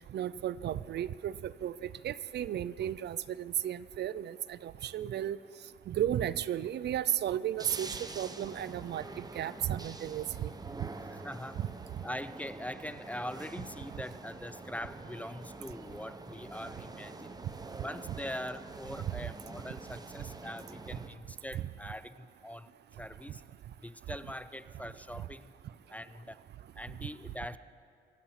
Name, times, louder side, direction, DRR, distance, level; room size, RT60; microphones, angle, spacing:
voice 1, 0.1-5.4 5.9-10.5 21.5-21.6, right 11 dB, 60° right, 17 dB, 0.5 m, -34 dB
sound 1, 7.6-21.1, right 2 dB, 20° right, 1.0 m, -46 dB
voice 2, 11.2-11.6 12.0-17.4 17.8-22.7 23.0-23.4 23.8-25.5 25.9-26.4 26.8-27.6, left 1 dB, 5° left, 14 dB, 0.5 m, -42 dB
25.0 x 8.4 x 5.8 m, 2.5 s
cardioid pair, 90°, 20 cm